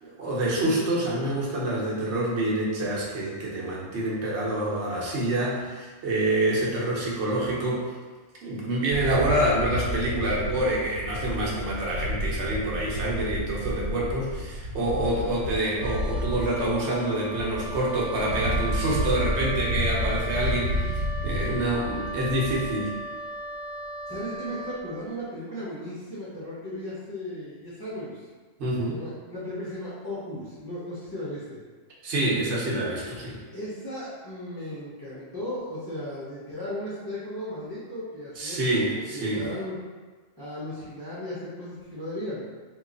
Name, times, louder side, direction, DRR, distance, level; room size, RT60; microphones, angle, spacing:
voice 1, 0.0-7.9 8.4-22.9 28.6-29.0 32.0-33.4 38.4-39.4, right 1 dB, 60° right, -4 dB, 1.0 m, -27 dB
sound 1, 8.9-22.7, equal, 85° right, 1.1 m, -31 dB
Wind instrument woodwind instrument, 15.7-24.9, right 2 dB, 60° left, 0.7 m, -37 dB
voice 2, 24.1-28.3 28.9-31.6 33.5-39.8 40.4-42.4, left 1 dB, 30° left, -9 dB, 0.4 m, -36 dB
3.1 x 2.3 x 3.7 m, 1.4 s
omnidirectional pair, 1.4 m